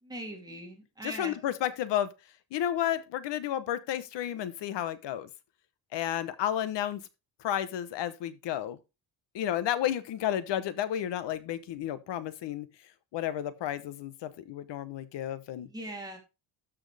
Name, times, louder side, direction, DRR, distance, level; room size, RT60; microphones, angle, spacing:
voice 1, 0.0-1.4 15.6-16.2, right 1 dB, 10° right, 3.1 m, -41 dB
voice 2, 1.0-2.1 2.5-5.3 5.9-7.0 7.4-8.8 9.3-15.7, left 11 dB, 70° left, 1.1 m, -32 dB
13.0 x 6.2 x 3.4 m
cardioid pair, 160°, 43 cm